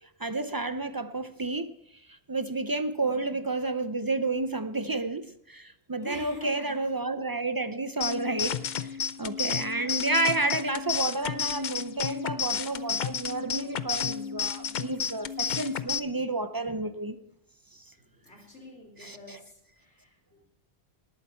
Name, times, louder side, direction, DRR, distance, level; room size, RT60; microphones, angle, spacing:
voice 1, 0.2-1.7 2.3-8.5 8.8-17.2 19.0-19.4, right 2 dB, 35° right, 0.3 m, -31 dB
voice 2, 3.0-3.4 6.0-6.9 9.6-10.1 18.0-20.5, left 2 dB, 80° left, 3.9 m, -47 dB
sound 1, 8.0-16.0, left 6 dB, 55° left, 0.6 m, -32 dB
19.0 x 8.6 x 4.4 m
omnidirectional pair, 1.2 m